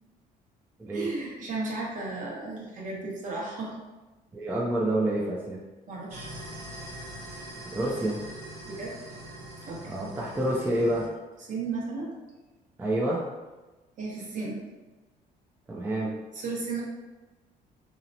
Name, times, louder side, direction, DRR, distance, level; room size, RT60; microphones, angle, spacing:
voice 1, 0.9-3.7 4.4-4.5 5.9-6.3 8.6-8.9 9.7-10.0 11.4-12.1 14.0-14.6 16.3-16.8, right 3 dB, 50° right, -3 dB, 0.8 m, -34 dB
voice 2, 4.3-5.6 7.7-8.2 9.9-11.1 12.8-13.3 15.7-16.1, right 1 dB, 10° right, -4 dB, 0.4 m, -28 dB
sound 1, 6.1-11.1, right 1 dB, 75° right, 0.7 m, -42 dB
2.8 x 2.0 x 2.6 m, 1.2 s
cardioid pair, 110°, 17 cm